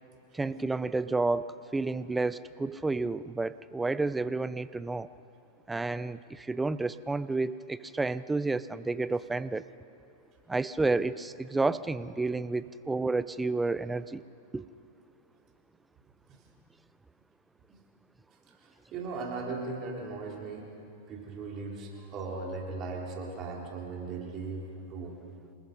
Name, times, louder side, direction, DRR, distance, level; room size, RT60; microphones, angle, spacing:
voice 1, 0.3-5.1 5.7-9.6 10.5-14.2 14.5-14.6, right 3 dB, 10° right, 16 dB, 0.6 m, -30 dB
voice 2, 18.6-20.7 21.1-24.6 24.9-25.2, right 3 dB, 40° right, 0 dB, 3.8 m, -38 dB
27.5 x 20.5 x 5.3 m, 2.6 s
hypercardioid pair, 110°, 0 cm